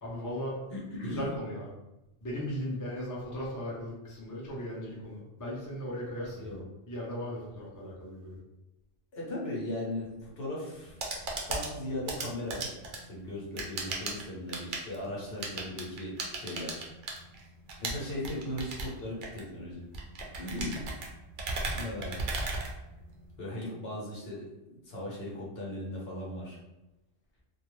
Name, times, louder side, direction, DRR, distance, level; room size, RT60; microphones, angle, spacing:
voice 1, 0.0-0.6 1.0-1.7 2.2-6.6 6.9-8.4 15.0-15.2, equal, 25° left, -5 dB, 0.4 m, -37 dB
voice 2, 0.7-1.3 6.3-6.6 9.1-11.0 11.5-12.7 12.9-16.9 17.8-19.8 20.4-20.8 21.7-22.2 23.4-24.4 24.8-26.6, left 1 dB, 60° left, -5 dB, 1.0 m, -37 dB
sound 1, 10.7-23.4, right 3 dB, 60° right, 0.6 m, -37 dB
2.3 x 2.2 x 3.0 m, 0.97 s
omnidirectional pair, 1.2 m